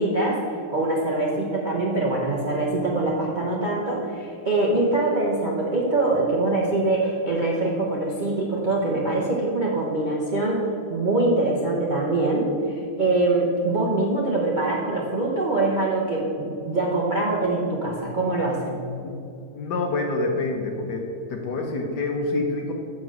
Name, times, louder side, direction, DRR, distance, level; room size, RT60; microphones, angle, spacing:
voice 1, 0.0-18.8, right 2 dB, 40° right, -3 dB, 0.6 m, -24 dB
voice 2, 19.5-21.0 21.3-22.7, left 3 dB, 60° left, 2 dB, 1.2 m, -26 dB
7.5 x 6.2 x 6.2 m, 2.5 s
omnidirectional pair, 2.3 m